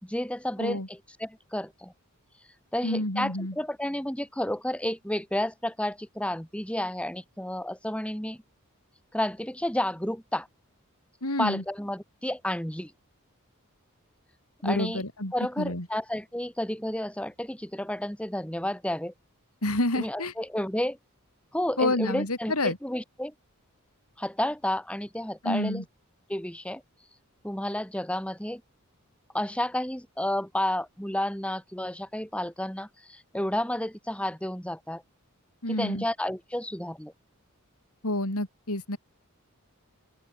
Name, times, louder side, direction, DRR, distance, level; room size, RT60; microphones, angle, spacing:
voice 1, 0.0-1.9 2.7-8.4 9.1-10.5 11.4-12.9 14.6-15.0 15.3-19.1 20.0-21.0 21.5-23.3 24.2-25.8 26.3-26.8 27.4-28.6 29.3-35.0 35.7-37.1, left 1 dB, 5° left, 3.2 m, -31 dB
voice 2, 2.8-3.5 11.2-11.6 14.6-15.9 19.6-20.3 21.8-22.8 25.4-25.8 35.6-36.0 38.0-39.0, left 1 dB, 75° left, 5.6 m, -28 dB
open air
head